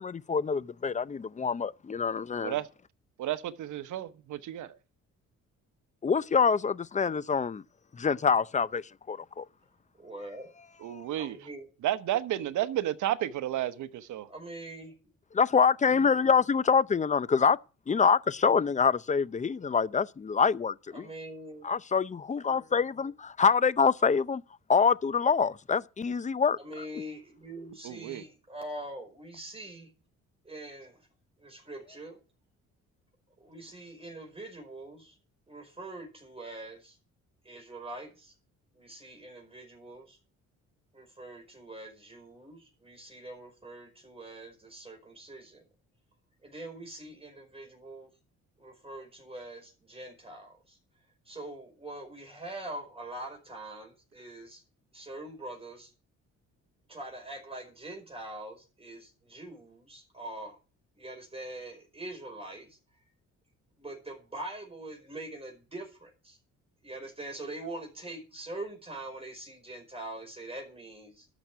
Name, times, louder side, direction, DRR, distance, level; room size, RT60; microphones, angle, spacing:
voice 1, 0.0-2.5 6.0-7.6 7.9-8.8 9.1-9.4 10.9-11.0 15.3-17.6 17.9-21.1 21.6-24.4 24.7-26.6, left 6 dB, 25° left, 0.6 m, -25 dB
voice 2, 3.2-4.8 10.8-11.4 11.8-14.3 27.8-28.2, right 13 dB, 75° right, 1.1 m, -32 dB
voice 3, 9.9-10.5 11.1-11.7 14.3-15.0 20.9-21.6 26.6-29.9 30.4-31.0 31.4-32.2 33.4-35.2 35.5-37.0 37.4-38.3 38.7-40.2 40.9-45.6 46.4-48.1 48.6-50.8 51.3-54.6 54.9-55.9 56.9-60.6 61.0-62.8 63.8-66.4 66.8-71.3, right 1 dB, 20° right, 4.9 m, -43 dB
12.5 x 6.1 x 9.2 m
cardioid pair, 90°, 30 cm